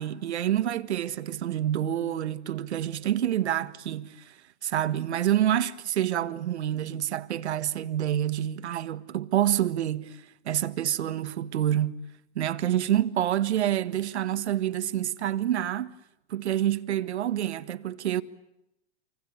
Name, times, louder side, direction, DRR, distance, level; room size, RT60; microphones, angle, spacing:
voice 1, 0.0-4.3 4.6-10.2 10.5-12.0 12.4-15.9 16.3-18.2, right 11 dB, 80° right, 1.7 m, -27 dB
28.5 x 25.0 x 8.4 m
hypercardioid pair, 160°, 33 cm